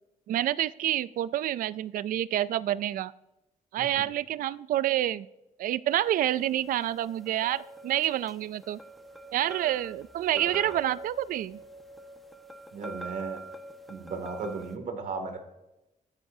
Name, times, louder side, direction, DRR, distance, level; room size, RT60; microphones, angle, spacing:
voice 1, 0.3-3.1 3.7-5.3 5.6-8.8 9.3-11.6, right 12 dB, 90° right, 18 dB, 0.4 m, -28 dB
sound 1, 6.4-14.8, right 2 dB, ahead, 1.3 m, -45 dB
voice 2, 12.7-13.4 13.9-15.4, right 4 dB, 70° right, 6 dB, 2.3 m, -36 dB
23.5 x 9.8 x 2.7 m, 0.96 s
cardioid pair, 110°, 14 cm